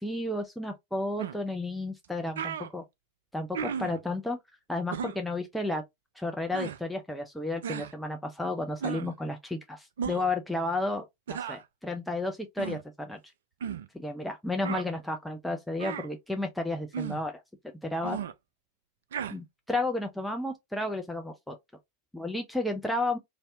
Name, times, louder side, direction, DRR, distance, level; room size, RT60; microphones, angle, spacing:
voice 1, 0.0-2.8 3.3-4.4 4.7-5.8 6.2-13.2 13.9-17.4 17.8-18.2 19.3-21.6 22.1-23.2, left 2 dB, 5° left, 0.5 m, -32 dB
sound 1, 1.2-1.4 2.0-2.1 2.4-2.7 3.5-4.0 4.9-5.2 6.5-6.8 7.6-7.9 8.8-9.1 10.0-10.3 11.3-11.6 12.6-12.8 13.6-13.9 14.6-14.9 15.8-16.1 16.9-17.2 18.0-18.3 19.1-19.3, right 7 dB, 60° right, 0.3 m, -35 dB
3.3 x 2.7 x 2.4 m
figure-of-eight pair, 90°, 0 cm